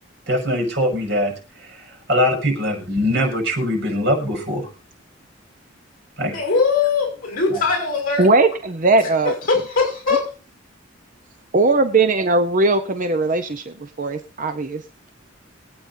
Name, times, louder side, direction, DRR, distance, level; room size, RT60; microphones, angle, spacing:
voice 1, 0.3-1.3 2.1-4.7 6.2-6.4 7.5-7.6, equal, 60° right, 2 dB, 6.0 m, -21 dB
voice 2, 6.3-8.2 9.5-10.2, left 4 dB, 45° left, 2 dB, 6.3 m, -20 dB
voice 3, 8.2-9.3 11.5-14.8, right 3 dB, 45° right, 8 dB, 0.8 m, -19 dB
24.0 x 8.9 x 2.7 m, 0.32 s
head